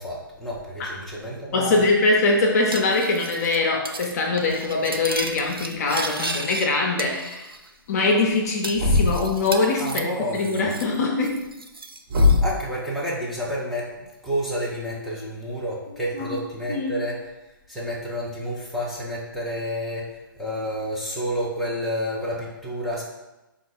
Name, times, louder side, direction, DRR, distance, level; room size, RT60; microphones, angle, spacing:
voice 1, 0.0-1.7 9.8-10.7 12.4-17.2 17.7-23.0, equal, ahead, -6 dB, 0.7 m, -30 dB
voice 2, 1.5-7.5 7.9-11.4 16.1-16.3 16.7-16.9, left 3 dB, 45° left, 1 dB, 0.6 m, -23 dB
Cutlery silverware, 2.7-3.6 3.8-4.1 4.4-6.7 7.0-7.7 8.0-8.1 8.6-11.0 11.2-12.4, right 3 dB, 90° right, 0.4 m, -34 dB
Thump thud, 8.7-9.4 12.1-12.6, left 3 dB, 35° right, 0.8 m, -19 dB
4.3 x 2.4 x 4.0 m, 1.0 s
figure-of-eight pair, 125°, 12 cm